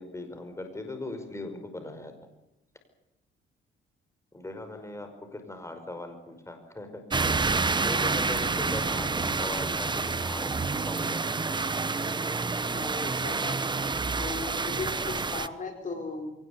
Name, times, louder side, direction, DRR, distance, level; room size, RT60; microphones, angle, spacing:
voice 1, 0.0-2.1 4.3-7.0 7.8-11.6 15.1-15.2, left 2 dB, 15° left, 7 dB, 5.3 m, -39 dB
sound 1, 7.1-15.5, right 4 dB, 20° right, 1.1 m, -28 dB
voice 2, 12.7-13.6 14.2-16.3, left 3 dB, 40° left, 4 dB, 4.6 m, -37 dB
23.0 x 18.5 x 8.4 m, 0.92 s
cardioid pair, 90°, 20 cm